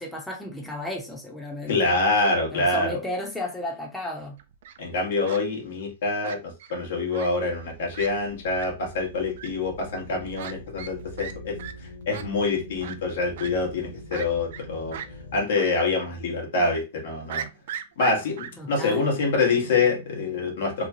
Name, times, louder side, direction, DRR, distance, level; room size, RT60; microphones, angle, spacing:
voice 1, 0.0-1.9 2.5-4.4 18.6-19.2, left 1 dB, 5° left, 0.8 m, -33 dB
voice 2, 1.7-3.0 4.8-11.6 12.1-15.0 15.3-17.5 18.0-20.9, left 3 dB, 70° left, 1.1 m, -26 dB
Fowl, 4.4-4.8 5.3-5.4 6.2-6.7 7.1-7.3 7.6-7.7 7.9-8.1 8.5-8.7 9.4-9.5 10.4-10.5 10.8-10.9 11.2-11.3 11.6-11.7 12.1-12.2 12.8-13.0 13.4-13.5 14.1-14.6 14.9-15.1 15.6-15.7 16.0-16.1 17.3-18.5, right 9 dB, 65° right, 0.3 m, -36 dB
sound 1, 6.9-15.4, left 1 dB, 85° left, 0.6 m, -44 dB
3.0 x 2.2 x 2.7 m
hypercardioid pair, 115°, 0 cm